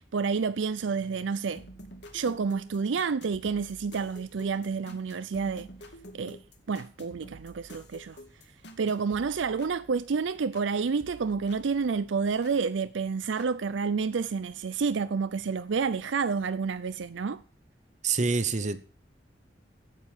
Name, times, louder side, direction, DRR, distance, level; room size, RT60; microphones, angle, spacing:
voice 1, 0.0-1.6 2.1-5.7 6.1-6.4 6.7-8.2 8.8-17.4, right 5 dB, 80° right, 0.5 m, -29 dB
sound 1, 1.6-10.7 11.0-12.6 13.4-13.5, equal, 65° left, 2.1 m, -50 dB
voice 2, 18.0-18.8, right 4 dB, 40° right, 0.8 m, -26 dB
9.3 x 7.5 x 8.6 m
head